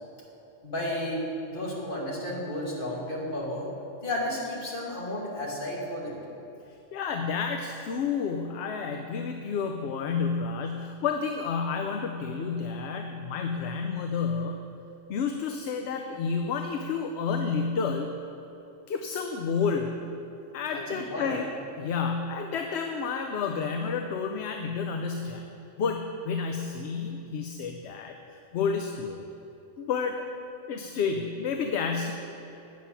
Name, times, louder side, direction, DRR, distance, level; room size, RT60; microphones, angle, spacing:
voice 1, 0.6-1.2 1.5-3.7 4.0-6.2 20.7-20.8 21.1-21.3, left 1 dB, 45° left, -4 dB, 2.0 m, -32 dB
voice 2, 6.9-14.6 15.1-18.1 18.9-20.0 20.5-25.5 25.8-29.2 29.8-30.2 30.7-32.1, left 5 dB, 65° left, 4 dB, 0.8 m, -30 dB
8.5 x 7.4 x 5.7 m, 3.0 s
omnidirectional pair, 1.3 m